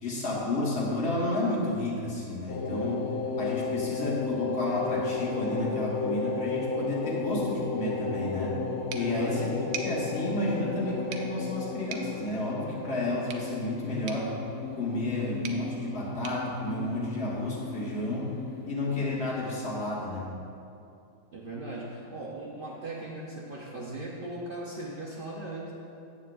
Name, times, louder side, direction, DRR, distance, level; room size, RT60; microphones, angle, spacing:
voice 1, 0.0-3.1 3.4-8.6 8.9-14.4 14.7-18.3 18.7-20.3, left 2 dB, 50° left, -5 dB, 1.6 m, -31 dB
sound 1, 2.5-19.5, left 4 dB, 90° left, 1.2 m, -34 dB
voice 2, 8.9-9.5 21.3-25.7, right 2 dB, 50° right, -4 dB, 0.8 m, -38 dB
sound 2, 8.9-17.6, right 5 dB, 75° right, 1.0 m, -45 dB
9.1 x 8.2 x 2.4 m, 2.7 s
omnidirectional pair, 1.5 m